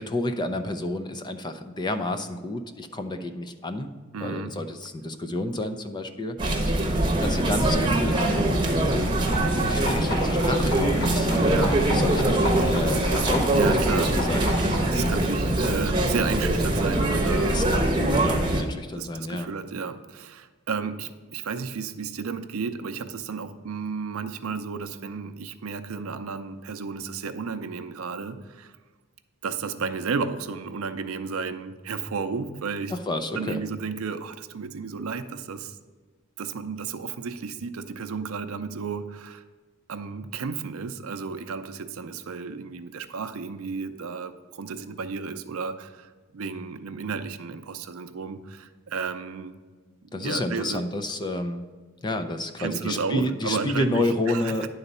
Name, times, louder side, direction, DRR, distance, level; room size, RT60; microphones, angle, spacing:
voice 1, 0.0-3.9 4.2-6.4 6.6-8.5 9.7-14.4 17.5-19.5 32.9-33.6 50.1-51.6 52.0-54.7, left 1 dB, 20° left, 7 dB, 0.4 m, -30 dB
voice 2, 4.1-4.5 11.3-11.8 13.4-14.1 14.9-17.7 18.1-18.4 18.9-28.8 29.4-32.9 33.3-35.8 36.4-39.4 39.9-49.5 50.0-50.8 52.6-54.7, right 5 dB, 80° right, 8 dB, 0.5 m, -33 dB
sound 1, 6.4-18.6, right 1 dB, 20° right, 0.9 m, -23 dB
sound 2, 9.1-14.9, left 1 dB, 50° left, 2.1 m, -33 dB
10.0 x 4.0 x 5.4 m, 1.4 s
head